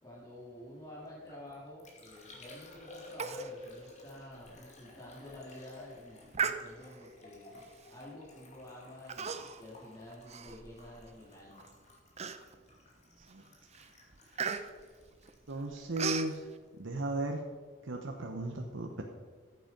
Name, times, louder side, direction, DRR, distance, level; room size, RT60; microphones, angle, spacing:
voice 1, 0.0-11.7, left 1 dB, 20° left, -8 dB, 2.5 m, -50 dB
Liquid, 1.1-17.7 17.9-18.5, left 2 dB, 40° left, 2.5 m, -54 dB
Human voice, 3.2-3.5 3.8-3.9 4.4-4.6 5.1-5.4 6.3-7.1 7.8-8.1 9.1-9.7 10.1-11.1 11.6-11.7 12.2-12.7 13.2-13.4 13.7-16.3, right 6 dB, 35° right, 0.6 m, -37 dB
voice 2, 15.5-16.4 16.8-17.4 17.8-19.0, right 1 dB, 80° right, 2 dB, 1.0 m, -35 dB
13.5 x 8.1 x 5.3 m, 1.5 s
head